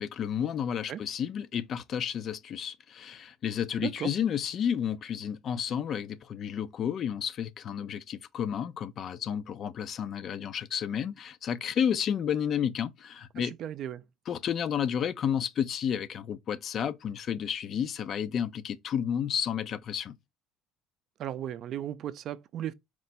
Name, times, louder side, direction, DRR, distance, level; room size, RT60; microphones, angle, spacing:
voice 1, 0.0-13.5 14.3-20.2, left 8 dB, 45° left, 0.4 m, -31 dB
voice 2, 13.4-14.0 21.2-22.7, right 11 dB, 55° right, 0.4 m, -36 dB
4.4 x 2.1 x 4.0 m
supercardioid pair, 105°, 0 cm